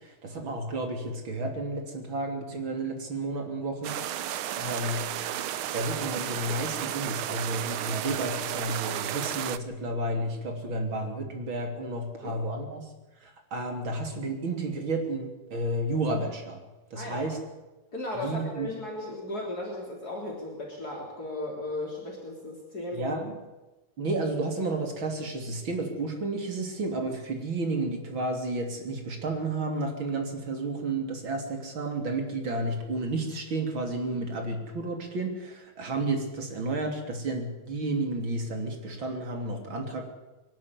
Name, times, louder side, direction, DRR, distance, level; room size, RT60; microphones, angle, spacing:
voice 1, 0.0-4.0 4.6-12.9 13.2-16.6 16.9-17.4 18.2-18.7 22.9-23.4 24.0-40.0, right 2 dB, 70° right, 3 dB, 4.0 m, -32 dB
sound 1, 3.8-9.6, right 11 dB, 85° right, 1.7 m, -33 dB
voice 2, 16.9-17.3 17.9-23.2, left 2 dB, 45° left, -2 dB, 4.0 m, -36 dB
23.5 x 12.0 x 9.8 m, 1.1 s
omnidirectional pair, 2.2 m